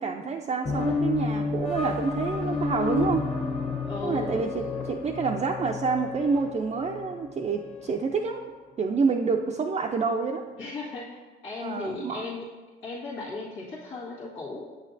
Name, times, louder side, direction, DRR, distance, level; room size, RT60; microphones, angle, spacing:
voice 1, 0.0-3.2 4.0-8.4 8.8-10.4 11.6-12.2, right 5 dB, 30° right, 1 dB, 0.4 m, -28 dB
sound 1, 0.6-8.0, left 4 dB, 30° left, 1.2 m, -31 dB
voice 2, 3.9-4.9 10.6-12.5 12.8-14.7, left 3 dB, 85° left, -7 dB, 1.7 m, -36 dB
7.7 x 6.4 x 2.6 m, 1.3 s
cardioid pair, 90°, 20 cm